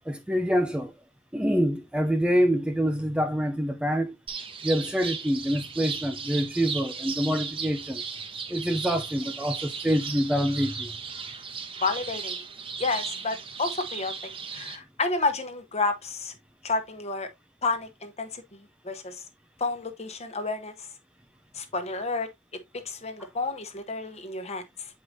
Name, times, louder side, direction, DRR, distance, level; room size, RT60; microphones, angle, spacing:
voice 1, 0.1-0.9 1.3-4.2 4.6-8.0 8.5-10.9 23.2-23.3, equal, 5° right, 0.4 m, -26 dB
sound 1, 4.3-14.8, right 5 dB, 30° right, 0.9 m, -36 dB
voice 2, 11.8-12.4 12.8-14.1 14.5-16.3 16.6-17.3 17.6-19.2 19.6-20.9 21.5-22.3 22.7-24.9, left 3 dB, 35° left, 1.0 m, -30 dB
7.7 x 4.7 x 2.6 m
head